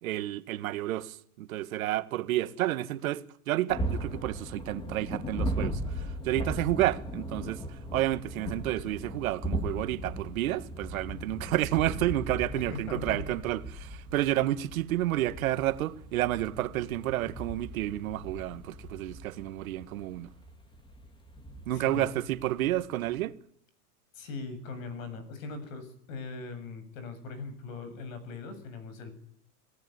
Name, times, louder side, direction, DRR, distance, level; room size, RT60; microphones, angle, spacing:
voice 1, 0.0-20.3 21.7-23.4, right 14 dB, 65° right, 1.9 m, -30 dB
sound 1, 3.7-23.2, right 1 dB, 10° left, 2.6 m, -38 dB
voice 2, 12.5-13.3 21.7-22.1 24.1-29.1, left 4 dB, 60° left, 7.9 m, -40 dB
28.0 x 17.5 x 9.6 m
supercardioid pair, 155°, 45 cm